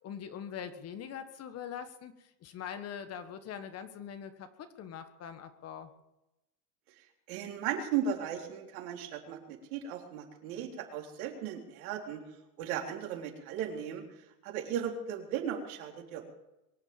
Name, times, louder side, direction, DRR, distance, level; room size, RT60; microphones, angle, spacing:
voice 1, 0.0-5.9, left 8 dB, 35° left, 9 dB, 1.5 m, -43 dB
voice 2, 7.3-12.2 12.6-14.0 14.4-16.3, right 8 dB, 65° right, 1 dB, 3.9 m, -36 dB
23.5 x 8.0 x 7.4 m, 0.93 s
supercardioid pair, 130°, 45 cm